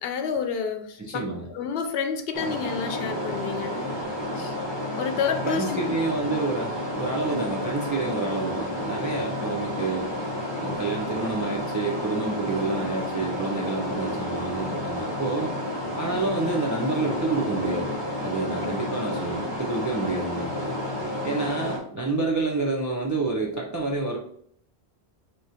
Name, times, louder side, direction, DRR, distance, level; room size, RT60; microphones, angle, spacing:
voice 1, 0.0-1.2 1.5-3.9 4.4-4.6 5.0-5.8 7.3-7.4 18.6-18.8, left 6 dB, 65° left, 6 dB, 0.8 m, -29 dB
voice 2, 1.0-1.5 5.4-10.1 10.6-15.5 16.0-20.8 21.2-24.2, right 3 dB, 30° right, -2 dB, 0.3 m, -28 dB
sound 1, 2.3-21.8, left 1 dB, 25° left, 0.8 m, -31 dB
4.9 x 2.9 x 2.7 m, 0.64 s
omnidirectional pair, 1.1 m